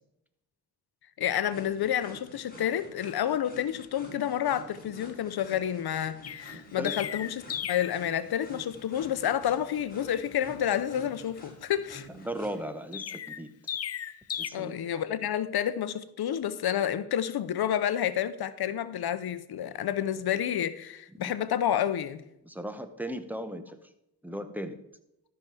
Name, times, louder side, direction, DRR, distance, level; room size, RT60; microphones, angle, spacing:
voice 1, 1.2-7.4 7.7-12.1 14.5-22.2, left 10 dB, 80° left, 0.8 m, -29 dB
sound 1, 1.5-12.6, left 1 dB, 25° left, 3.6 m, -49 dB
Chirp tweet, 6.2-8.0 12.9-14.5, left 9 dB, 40° left, 0.4 m, -36 dB
voice 2, 6.5-7.0 12.1-13.5 14.4-14.8 21.2-21.3 22.4-23.9 24.2-24.8, equal, 5° right, 1.1 m, -37 dB
13.0 x 6.0 x 4.9 m
cardioid pair, 70°, 38 cm